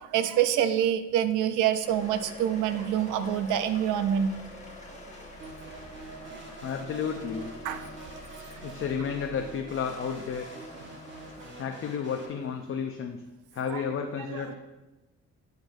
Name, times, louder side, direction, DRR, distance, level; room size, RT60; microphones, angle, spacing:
voice 1, 0.0-4.4 6.3-6.4 7.6-7.8 13.7-13.8 14.3-14.4, right 10 dB, 85° right, 10 dB, 0.5 m, -26 dB
sound 1, 1.8-12.7, left 1 dB, 25° left, 1.4 m, -46 dB
sound 2, 5.4-12.3, right 2 dB, 40° right, 1.5 m, -45 dB
voice 2, 6.6-7.5 8.6-10.5 11.6-13.2 13.5-14.5, left 7 dB, 45° left, 4 dB, 0.6 m, -32 dB
10.5 x 3.9 x 2.6 m, 1.1 s
cardioid pair, 90°, 30 cm